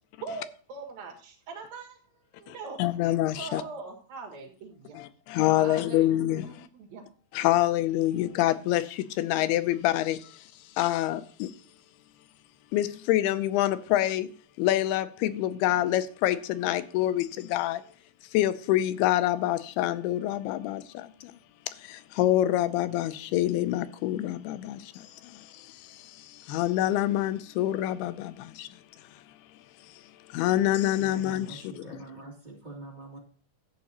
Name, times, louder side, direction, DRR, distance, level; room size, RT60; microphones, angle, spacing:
voice 1, 0.2-2.0 2.4-2.8 3.4-5.0 5.6-7.0, right 4 dB, 65° right, 3.6 m, -41 dB
voice 2, 2.5-3.6 4.9-6.7 7.3-10.3 10.8-11.5 12.7-14.3 14.6-17.8 18.3-21.3 21.8-28.7 30.3-32.0, left 14 dB, 85° left, 2.6 m, -27 dB
voice 3, 31.0-33.2, right 3 dB, 20° right, 1.5 m, -45 dB
13.0 x 8.7 x 2.9 m
omnidirectional pair, 4.5 m